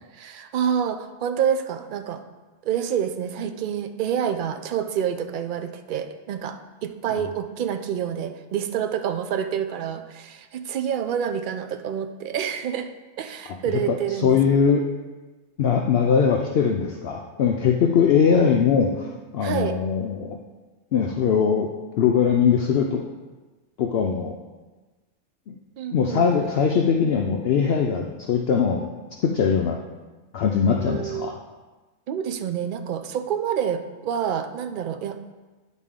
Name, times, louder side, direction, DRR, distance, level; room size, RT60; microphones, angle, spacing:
voice 1, 0.1-2.2 2.6-12.9 13.2-14.4 19.4-19.7 25.8-26.3 30.7-31.3 32.1-35.2, right 8 dB, 60° right, 8 dB, 0.5 m, -28 dB
voice 2, 13.5-14.8 15.6-20.4 20.9-21.7 22.0-23.0 23.8-24.4 25.5-25.6 25.9-28.9 29.2-29.8 30.3-31.4, left 6 dB, 65° left, 2 dB, 0.7 m, -21 dB
10.0 x 4.1 x 3.7 m, 1.2 s
omnidirectional pair, 1.3 m